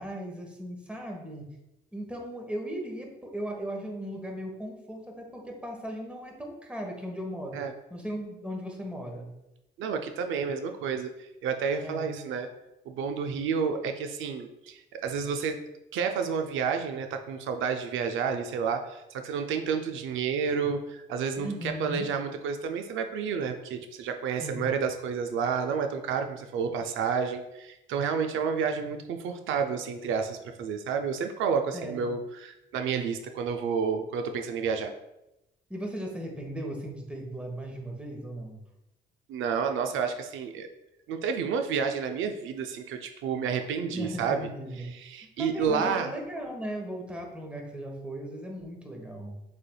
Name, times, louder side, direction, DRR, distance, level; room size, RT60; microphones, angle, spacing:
voice 1, 0.0-1.5 1.9-7.6 7.9-9.3 11.8-12.1 21.4-22.1 24.4-24.7 31.7-32.1 35.7-38.6 43.9-45.0 45.4-49.4, equal, 5° right, 1 dB, 1.1 m, -37 dB
voice 2, 9.8-12.5 12.9-15.6 15.9-34.9 39.3-40.7 41.1-44.5 44.8-46.1, right 6 dB, 80° right, 6 dB, 0.4 m, -30 dB
6.5 x 3.3 x 2.2 m, 0.91 s
cardioid pair, 90°, 20 cm